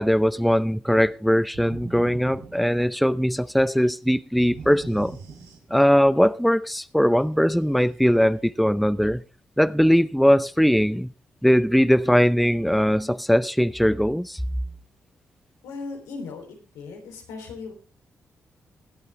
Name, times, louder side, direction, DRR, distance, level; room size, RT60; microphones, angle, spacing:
voice 1, 0.0-5.2 5.7-9.2 9.6-11.1 11.4-14.4, equal, ahead, 0.6 m, -20 dB
sound 1, 1.5-3.3 4.4-6.1, right 5 dB, 75° right, 3.3 m, -41 dB
voice 2, 15.6-16.5 16.7-17.7, left 4 dB, 90° left, 3.5 m, -37 dB
20.5 x 8.4 x 3.4 m
supercardioid pair, 50°, 6 cm